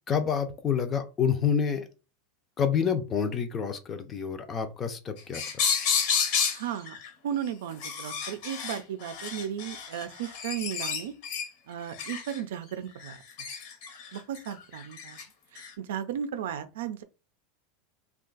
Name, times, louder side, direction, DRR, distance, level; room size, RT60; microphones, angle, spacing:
voice 1, 0.1-1.9 2.6-5.4, left 7 dB, 25° left, 0.5 m, -28 dB
sound 1, 5.2-6.6 6.9-7.1 7.7-11.5 11.9-12.4 13.0-15.2 15.6-15.7, left 6 dB, 55° left, 0.9 m, -31 dB
voice 2, 6.5-7.0 7.2-11.1 11.7-13.2 14.1-15.2 15.5-17.0, right 9 dB, 85° right, 0.4 m, -35 dB
2.5 x 2.3 x 3.8 m
supercardioid pair, 145°, 0 cm